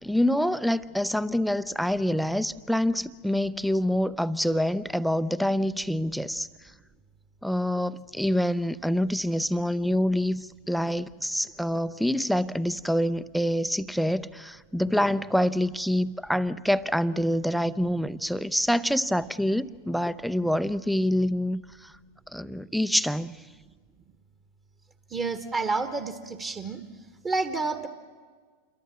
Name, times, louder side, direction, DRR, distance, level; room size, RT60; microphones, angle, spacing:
voice 1, 0.0-6.5 7.4-21.9 22.3-23.3, equal, ahead, 0.7 m, -26 dB
voice 2, 25.1-26.8 27.2-27.9, right 3 dB, 25° right, 1.6 m, -29 dB
28.0 x 22.5 x 7.6 m
figure-of-eight pair, 90°, 0 cm